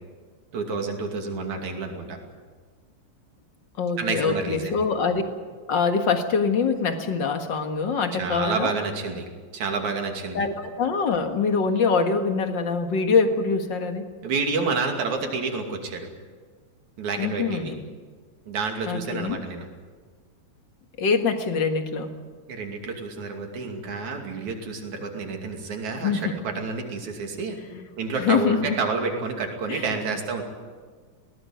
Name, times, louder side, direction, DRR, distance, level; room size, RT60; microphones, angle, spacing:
voice 1, 0.5-2.2 4.0-4.8 8.1-9.3 9.5-10.5 14.2-16.1 17.0-17.7 18.5-19.7 22.5-27.6 28.0-30.4, right 4 dB, 75° right, 3 dB, 4.0 m, -29 dB
voice 2, 3.8-5.2 5.7-8.7 10.3-14.1 17.2-17.8 18.9-19.4 21.0-22.1 26.0-26.4 27.7-27.8 28.2-28.8 29.7-29.8, left 5 dB, 45° left, 6 dB, 1.9 m, -24 dB
20.0 x 18.5 x 9.3 m, 1.5 s
omnidirectional pair, 3.3 m